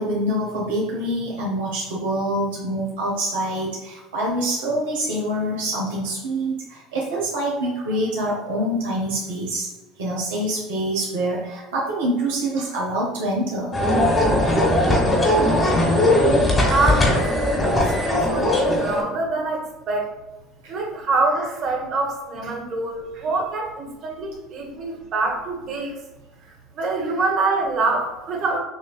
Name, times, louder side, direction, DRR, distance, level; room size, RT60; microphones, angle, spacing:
voice 1, 0.0-9.7 10.0-13.8 14.5-14.6 15.1-15.2 15.7-15.8 20.6-20.7, right 1 dB, 80° right, -3 dB, 0.9 m, -25 dB
sound 1, 13.7-19.0, left 1 dB, 20° left, 1.4 m, -19 dB
voice 2, 16.7-20.1 20.7-26.0 26.4-28.6, right 3 dB, 50° right, 1 dB, 1.1 m, -25 dB
6.1 x 2.7 x 2.3 m, 1.1 s
hypercardioid pair, 75°, 0 cm